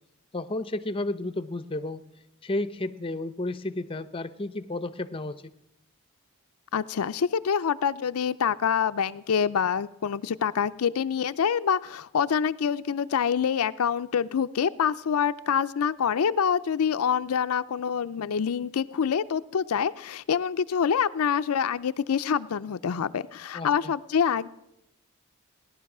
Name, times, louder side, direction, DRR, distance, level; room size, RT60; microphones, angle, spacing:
voice 1, 0.3-2.0 2.4-5.4 23.5-23.9, left 2 dB, 25° left, 13 dB, 0.6 m, -32 dB
voice 2, 6.7-24.5, left 7 dB, 90° left, 11 dB, 0.5 m, -26 dB
17.5 x 11.0 x 6.0 m, 0.84 s
head